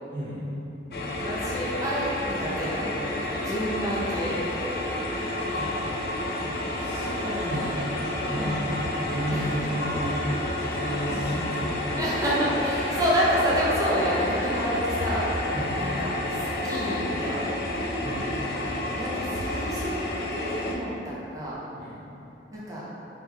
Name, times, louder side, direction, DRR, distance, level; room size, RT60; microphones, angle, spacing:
voice 1, 0.1-0.5 5.5-5.7 6.3-7.8 8.1-12.0 12.8-13.1 15.5-15.8 18.0-18.4 21.8-22.0, equal, 40° left, -16 dB, 1.1 m, -33 dB
sound 1, 0.9-20.8, left 1 dB, 55° left, 0.4 m, -30 dB
voice 2, 1.2-4.4 8.3-8.7 9.3-9.5 11.1-11.3 12.0-15.3 15.8-17.5 19.0-21.6 22.5-22.9, equal, 20° right, -8 dB, 0.6 m, -29 dB
3.3 x 2.3 x 3.4 m, 3.0 s
head